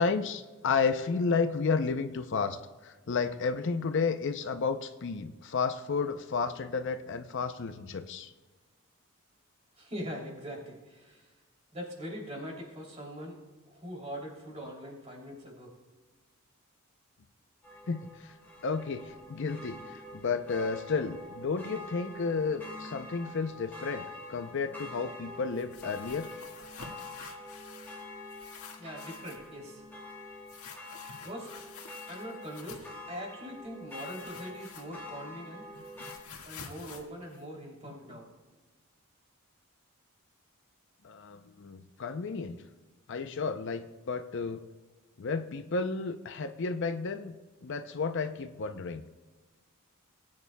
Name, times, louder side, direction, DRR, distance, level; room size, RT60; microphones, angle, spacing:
voice 1, 0.0-8.3 17.9-18.3 18.6-26.3 41.0-42.6 43.1-44.6 45.2-47.4 47.6-49.0, left 4 dB, 55° left, 9 dB, 0.5 m, -32 dB
voice 2, 9.8-11.3 11.7-13.4 13.7-15.7 28.8-29.8 31.2-31.6 32.1-35.9 36.4-38.3, equal, 30° right, -1 dB, 2.9 m, -42 dB
sound 1, 17.6-36.2, left 1 dB, 10° left, 2.3 m, -46 dB
sound 2, 25.5-28.0 28.3-29.5 30.5-33.0 33.9-35.2 35.5-38.1, left 5 dB, 80° left, 1.6 m, -49 dB
19.5 x 9.6 x 2.2 m, 1.3 s
head